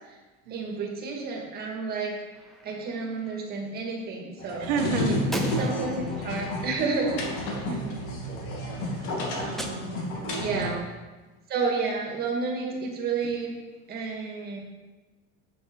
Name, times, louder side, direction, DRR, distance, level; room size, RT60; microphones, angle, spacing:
voice 1, 0.5-2.2 2.6-4.7 5.0-7.2 10.4-10.9 11.5-13.5 13.9-14.6, right 4 dB, 25° right, -1 dB, 1.9 m, -31 dB
Gunshot gunfire, 2.3-3.4 5.3-7.7 9.6-10.6, right 1 dB, ahead, 0.4 m, -39 dB
sound 1, 4.4-10.7, left 1 dB, 80° left, 2.3 m, -31 dB
voice 2, 4.6-5.4 7.7-8.0 9.4-10.8, right 6 dB, 75° right, 4 dB, 1.6 m, -32 dB
9.0 x 7.8 x 4.7 m, 1.2 s
cardioid pair, 170°, 35 cm